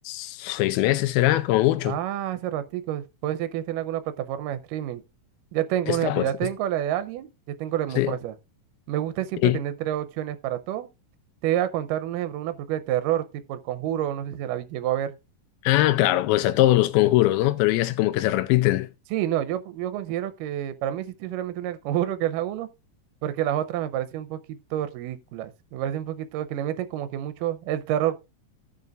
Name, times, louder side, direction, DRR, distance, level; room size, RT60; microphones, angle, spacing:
voice 1, 0.1-1.9 5.9-6.3 8.0-8.1 9.4-9.6 15.6-18.9, left 16 dB, 90° left, 2.5 m, -21 dB
voice 2, 1.8-5.0 5.5-8.3 8.9-10.9 11.4-15.1 19.1-22.7 23.2-28.2, right 12 dB, 80° right, 2.1 m, -28 dB
16.0 x 6.7 x 2.4 m
omnidirectional pair, 4.2 m